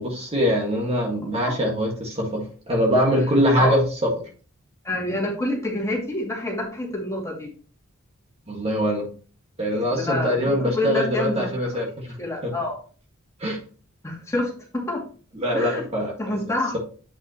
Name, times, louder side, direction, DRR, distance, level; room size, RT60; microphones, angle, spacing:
voice 1, 0.0-4.1 8.5-9.1 9.6-12.1 12.4-12.5 13.4-13.6 15.3-16.4, equal, 30° right, -1 dB, 1.7 m, -23 dB
voice 2, 4.8-7.5 9.7-11.5 12.2-12.8 14.0-15.0 15.5-15.8 16.2-16.8, left 1 dB, 15° left, -2 dB, 2.4 m, -27 dB
8.5 x 5.7 x 3.0 m, 0.40 s
head